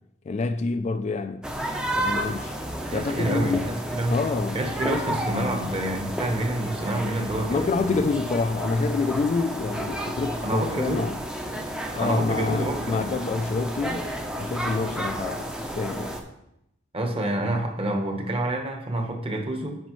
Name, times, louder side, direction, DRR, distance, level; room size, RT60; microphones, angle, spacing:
voice 1, 0.3-1.4 1.9-2.5 2.9-3.6 4.1-5.3 7.5-11.2 11.9-14.1 14.4-16.2, left 4 dB, 35° left, 0.3 m, -27 dB
sound 1, 1.4-16.2, right 1 dB, 5° right, 0.6 m, -32 dB
voice 2, 2.9-4.2 4.5-8.1 10.4-11.1 12.0-13.1 16.9-19.8, right 1 dB, 30° right, 1.1 m, -28 dB
9.2 x 5.4 x 3.1 m
head